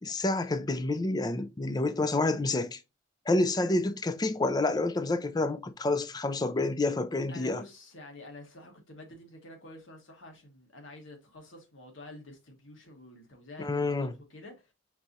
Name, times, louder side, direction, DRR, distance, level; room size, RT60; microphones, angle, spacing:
voice 1, 0.0-2.8 3.3-7.6 13.6-14.1, left 2 dB, 20° left, 0.4 m, -28 dB
voice 2, 7.3-14.5, left 1 dB, 80° left, 1.5 m, -48 dB
4.6 x 4.2 x 2.7 m
head